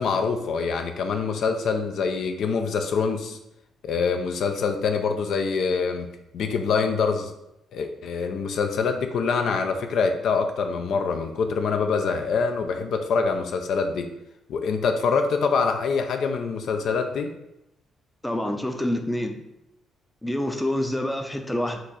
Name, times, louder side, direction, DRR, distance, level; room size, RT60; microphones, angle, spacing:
voice 1, 0.0-3.4 3.8-6.1 6.3-7.3 7.7-14.1 14.5-17.3, left 5 dB, 70° left, 6 dB, 0.4 m, -25 dB
voice 2, 18.2-19.4 20.2-21.8, left 1 dB, 10° left, 5 dB, 0.5 m, -27 dB
4.5 x 2.5 x 4.1 m, 0.86 s
cardioid pair, 90°, 0 cm